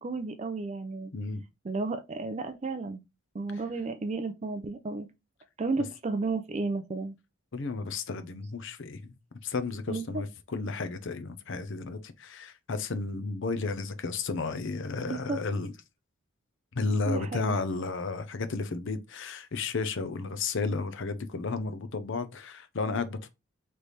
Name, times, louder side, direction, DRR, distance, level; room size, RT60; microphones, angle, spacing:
voice 1, 0.0-1.1 1.6-3.0 3.3-5.1 5.6-7.1 9.9-10.2 15.1-15.4 17.1-17.6, right 3 dB, 30° right, 0.4 m, -33 dB
voice 2, 7.5-9.1 9.4-15.7 16.7-23.3, left 3 dB, 60° left, 0.6 m, -33 dB
3.3 x 3.3 x 4.0 m
head